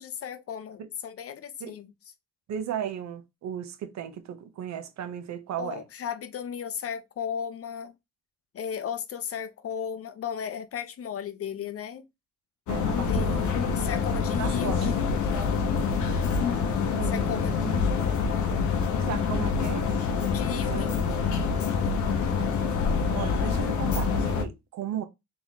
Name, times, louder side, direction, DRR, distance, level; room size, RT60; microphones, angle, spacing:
voice 1, 0.0-1.9 5.6-7.9 8.5-12.0 13.1-15.1 17.1-17.6 20.3-21.0, left 8 dB, 50° left, 0.8 m, -35 dB
voice 2, 2.5-5.8 12.7-13.5 14.3-15.0 16.8-17.8 19.1-19.9 20.5-21.2 22.3-22.8 23.1-25.0, right 9 dB, 65° right, 0.9 m, -36 dB
sound 1, 12.7-24.4, left 5 dB, 75° left, 1.2 m, -26 dB
3.8 x 3.0 x 4.1 m
cardioid pair, 90°, 30 cm